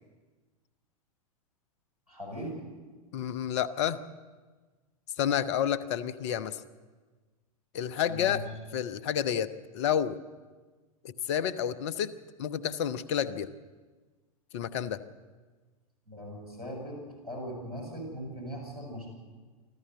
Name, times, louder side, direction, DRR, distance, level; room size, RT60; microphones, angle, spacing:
voice 1, 2.1-2.6 8.1-8.4 16.1-19.1, equal, 90° right, 0 dB, 7.5 m, -39 dB
voice 2, 3.1-4.0 5.2-6.6 7.7-8.4 8.7-10.2 11.0-12.1 12.4-13.5 14.5-15.0, left 9 dB, 50° left, 15 dB, 1.0 m, -30 dB
25.5 x 14.5 x 8.2 m, 1.4 s
figure-of-eight pair, 95°, 19 cm